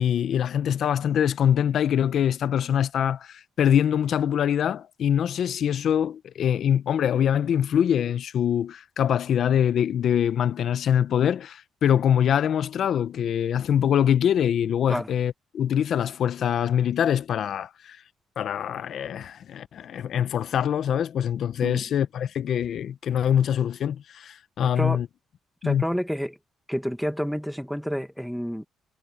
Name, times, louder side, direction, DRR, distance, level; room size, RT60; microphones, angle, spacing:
voice 1, 0.0-18.0 18.4-25.1 25.6-25.8, left 9 dB, 65° left, 0.7 m, -24 dB
voice 2, 24.6-25.0 25.6-26.4 26.7-28.6, equal, ahead, 1.6 m, -29 dB
cardioid pair, 90°, 0 cm